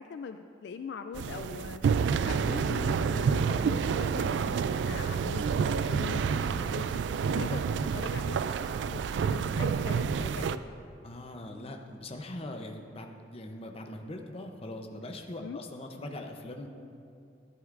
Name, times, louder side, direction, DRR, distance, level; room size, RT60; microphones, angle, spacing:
voice 1, 0.0-8.4 8.8-10.6 15.4-15.6, left 5 dB, 65° left, 9 dB, 0.3 m, -41 dB
sound 1, 1.1-10.6, right 6 dB, 75° right, 0.3 m, -29 dB
voice 2, 11.0-16.7, left 1 dB, 35° left, 4 dB, 0.7 m, -41 dB
12.5 x 11.0 x 2.5 m, 2.5 s
head